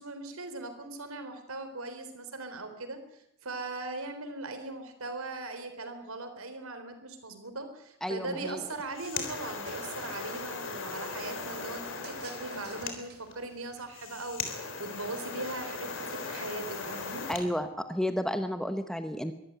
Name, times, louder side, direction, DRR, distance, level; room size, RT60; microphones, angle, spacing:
voice 1, 0.0-17.3, right 2 dB, 75° right, 7 dB, 3.9 m, -40 dB
voice 2, 8.0-8.6 17.3-19.3, equal, ahead, 8 dB, 0.9 m, -32 dB
sound 1, 8.7-17.5, left 4 dB, 60° left, 3.6 m, -38 dB
sound 2, 9.0-9.4 9.7-10.7 12.0-13.4, right 5 dB, 45° right, 3.4 m, -50 dB
23.5 x 13.5 x 9.3 m, 0.80 s
head